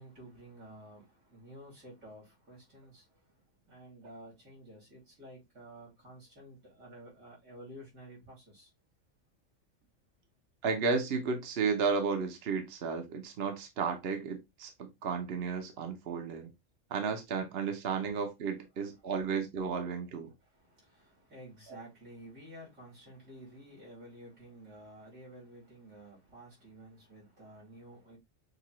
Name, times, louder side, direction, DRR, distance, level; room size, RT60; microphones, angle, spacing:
voice 1, 0.0-8.7 20.4-28.2, right 1 dB, 80° right, 3.6 m, -52 dB
voice 2, 10.6-16.5 16.9-20.3, right 5 dB, 55° right, 0.9 m, -33 dB
6.5 x 2.4 x 3.0 m
omnidirectional pair, 1.4 m